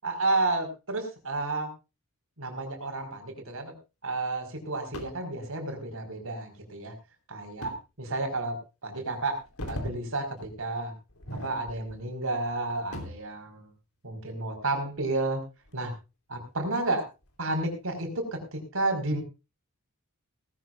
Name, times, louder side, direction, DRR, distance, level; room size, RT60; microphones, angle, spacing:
voice 1, 0.0-1.7 2.4-3.7 4.0-6.9 7.3-8.6 8.8-9.4 9.7-10.9 11.4-13.7 14.0-15.4 15.7-15.9 16.3-17.1 17.4-19.2, right 2 dB, 65° right, 5 dB, 5.2 m, -31 dB
sound 1, 4.9-5.2 7.6-7.8 8.4-8.5 9.3-10.0 10.4-10.6 11.1-12.0 12.4-13.3 14.8-15.9 16.4-16.5 17.2-17.6, left 1 dB, 75° left, 3.8 m, -40 dB
19.5 x 14.0 x 2.5 m, 0.28 s
head